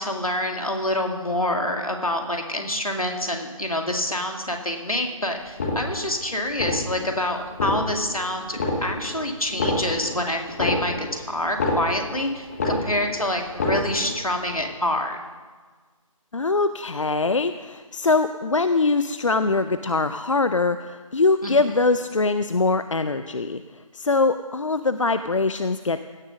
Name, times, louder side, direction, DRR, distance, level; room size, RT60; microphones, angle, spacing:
voice 1, 0.0-15.2 21.4-21.5, left 1 dB, 85° left, 3 dB, 2.2 m, -27 dB
sound 1, 5.5-6.2 6.5-7.1 7.5-8.2 8.5-9.2 9.5-12.2 12.5-13.2 13.5-14.2 14.5-14.6, left 2 dB, 25° left, 1.7 m, -27 dB
voice 2, 16.3-26.1, left 3 dB, 65° left, 11 dB, 0.6 m, -23 dB
16.5 x 7.2 x 6.3 m, 1.5 s
figure-of-eight pair, 155°, 18 cm